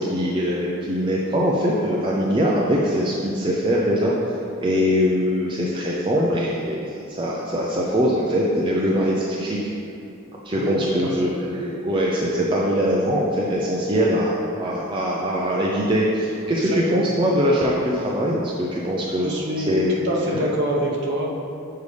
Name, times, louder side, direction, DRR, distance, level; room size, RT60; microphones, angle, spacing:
voice 1, 0.0-4.1 4.6-9.6 10.4-19.4 19.7-19.9 20.3-20.4, equal, 25° right, -5 dB, 0.4 m, -22 dB
voice 2, 10.5-11.4 16.6-17.1 19.2-21.3, equal, 50° right, -3 dB, 0.9 m, -26 dB
6.6 x 5.3 x 3.3 m, 2.6 s
head